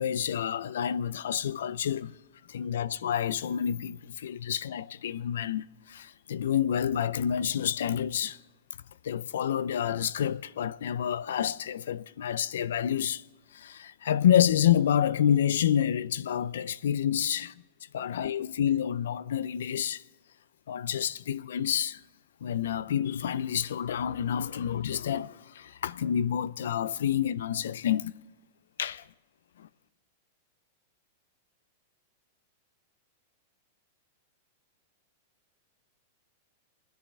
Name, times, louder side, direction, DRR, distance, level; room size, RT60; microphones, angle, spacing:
voice 1, 0.0-2.1 2.5-8.4 9.0-13.2 13.5-17.5 17.9-20.0 20.7-22.0 22.4-28.1 28.8-29.0 29.6-29.7, left 9 dB, 90° left, 0.4 m, -28 dB
28.5 x 10.5 x 3.5 m
supercardioid pair, 180°, 0 cm